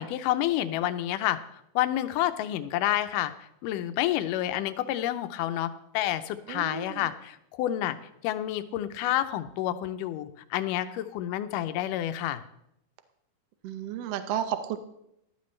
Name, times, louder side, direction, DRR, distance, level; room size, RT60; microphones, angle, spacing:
voice 1, 0.0-1.4 1.8-8.0 8.2-12.4, left 13 dB, 80° left, 11 dB, 2.2 m, -29 dB
voice 2, 6.5-7.1 13.6-14.8, right 9 dB, 75° right, 9 dB, 1.5 m, -32 dB
15.5 x 12.0 x 3.2 m, 0.80 s
omnidirectional pair, 3.8 m